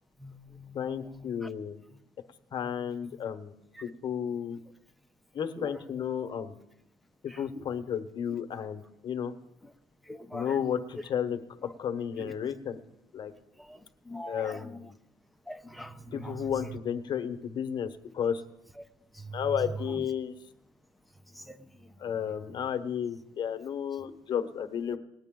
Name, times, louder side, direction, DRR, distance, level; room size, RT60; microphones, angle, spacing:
voice 1, 0.2-0.7 5.6-5.8 7.5-7.6 10.1-10.5 12.2-12.3 13.7-13.8 14.1-14.6 15.5-16.5 19.2-19.4 21.5-21.6 24.9-25.0, equal, ahead, 7 dB, 0.8 m, -42 dB
voice 2, 0.7-1.8 2.5-3.5 3.8-4.6 5.3-6.5 7.4-9.3 10.3-13.3 14.3-14.9 16.1-18.4 19.3-20.3 22.0-25.0, left 8 dB, 45° left, 8 dB, 1.1 m, -33 dB
19.5 x 9.7 x 3.8 m, 0.85 s
cardioid pair, 100°, 11 cm